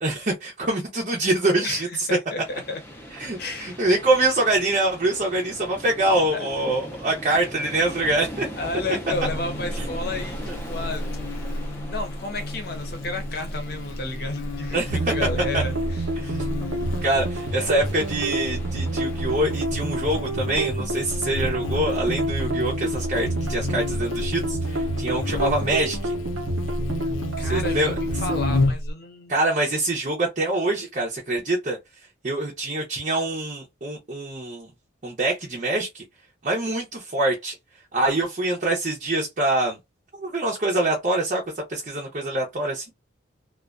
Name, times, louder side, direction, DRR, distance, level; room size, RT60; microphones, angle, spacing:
voice 1, 0.0-2.1 3.2-8.5 9.8-9.9 10.5-10.6 14.7-15.0 15.5-15.6 16.2-16.5 17.0-26.1 27.5-27.9 29.3-31.8 32.2-34.7 35.0-36.0 36.4-37.6 37.9-39.8 40.1-41.4 41.7-42.9, right 2 dB, 40° right, 0.6 m, -25 dB
voice 2, 1.6-2.8 3.4-3.8 6.3-6.4 8.6-11.0 11.5-16.1 16.9-17.0 27.4-29.3, left 2 dB, 50° left, 0.7 m, -32 dB
sound 1, 2.4-19.7, equal, 10° left, 0.5 m, -40 dB
Buzz, 9.1-28.9, left 2 dB, 75° left, 0.3 m, -32 dB
sound 2, 14.9-28.6, right 1 dB, 85° right, 0.7 m, -28 dB
2.4 x 2.2 x 2.4 m
head